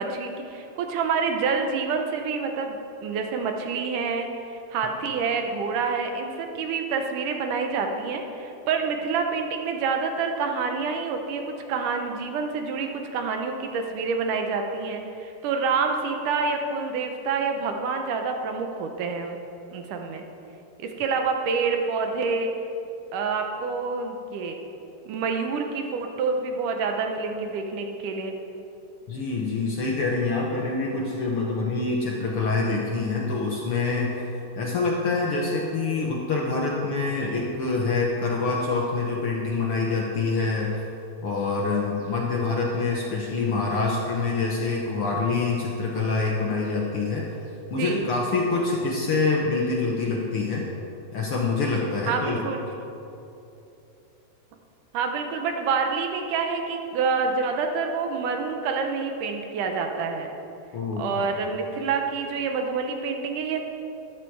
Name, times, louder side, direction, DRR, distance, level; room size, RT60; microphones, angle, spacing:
voice 1, 0.0-19.4 19.7-20.2 20.8-22.5 23.1-24.6 25.1-28.3 47.8-48.1 52.1-52.6 54.9-60.3 61.0-63.6, right 5 dB, 80° right, 4 dB, 2.5 m, -27 dB
voice 2, 29.1-40.9 41.2-47.2 47.7-50.7 51.1-52.5 60.7-61.3, left 3 dB, 60° left, -2 dB, 1.5 m, -26 dB
13.0 x 10.5 x 4.7 m, 2.9 s
omnidirectional pair, 3.6 m